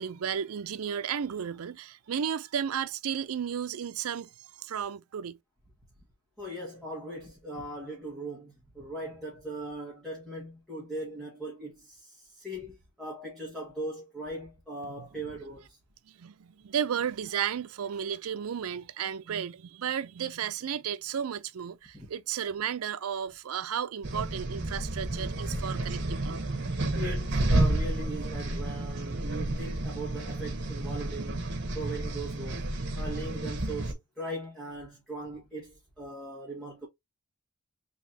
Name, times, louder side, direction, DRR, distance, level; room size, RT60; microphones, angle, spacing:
voice 1, 0.0-5.4 16.1-26.3, right 8 dB, 90° right, 0.5 m, -33 dB
voice 2, 6.4-15.8 21.9-22.1 26.9-31.5 31.7-32.7 32.9-36.9, right 1 dB, ahead, 1.4 m, -39 dB
sound 1, 24.0-33.9, right 2 dB, 55° right, 1.2 m, -31 dB
4.0 x 3.5 x 2.7 m
head